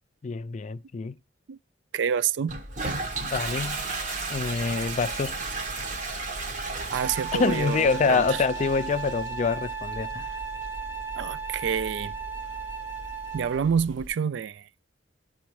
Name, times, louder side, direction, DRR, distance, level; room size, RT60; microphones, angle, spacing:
voice 1, 0.2-1.1 3.2-3.8 4.3-5.4 7.3-10.4, left 4 dB, 40° left, 0.3 m, -26 dB
voice 2, 1.9-2.5 6.9-8.3 11.2-12.1 13.3-14.7, right 7 dB, 70° right, 0.3 m, -27 dB
Toilet flush, 2.5-14.1, right 3 dB, 40° right, 1.1 m, -35 dB
Wind instrument woodwind instrument, 6.9-13.7, right 6 dB, 10° right, 1.1 m, -35 dB
12.0 x 4.2 x 3.1 m
head